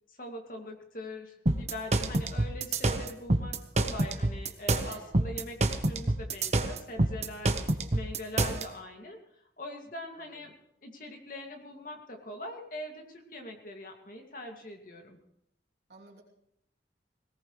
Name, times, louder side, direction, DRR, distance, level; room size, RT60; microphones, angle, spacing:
voice 1, 0.1-9.2 9.6-10.5 10.8-15.2, left 1 dB, 50° left, 2 dB, 2.4 m, -42 dB
sound 1, 1.5-8.6, right 2 dB, 40° right, 1.0 m, -27 dB
voice 2, 4.9-5.2 10.1-10.4 15.9-16.2, right 2 dB, 70° right, -3 dB, 3.1 m, -52 dB
20.5 x 18.0 x 3.2 m, 0.76 s
head